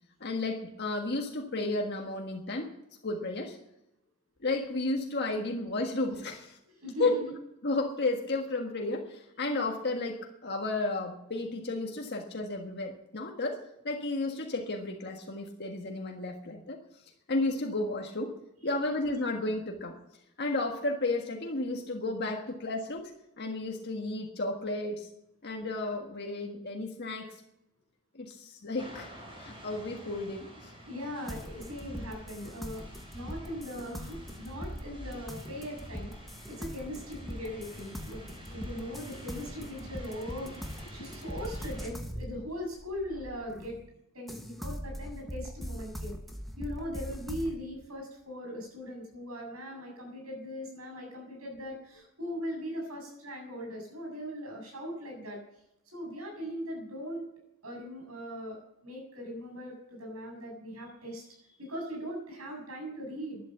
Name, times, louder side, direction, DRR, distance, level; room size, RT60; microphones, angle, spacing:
voice 1, 0.2-2.7 3.0-3.6 4.4-6.6 7.0-7.1 7.6-16.8 17.3-18.3 18.6-19.9 20.4-23.1 23.4-25.1 25.4-27.4 28.1-29.1 29.4-30.7, left 2 dB, 50° left, 1 dB, 1.6 m, -33 dB
voice 2, 6.6-7.4 18.6-18.9 29.7-29.9 30.6-36.1 36.5-38.2 38.5-40.5 40.9-43.8 44.1-46.1 46.6-55.4 55.9-57.3 57.6-63.4, equal, 75° right, 0 dB, 7.6 m, -40 dB
sound 1, 28.8-41.9, equal, 25° right, 4.9 m, -49 dB
sound 2, 31.3-43.9 44.3-47.6, equal, ahead, 1.4 m, -41 dB
12.0 x 11.5 x 7.9 m, 0.82 s
head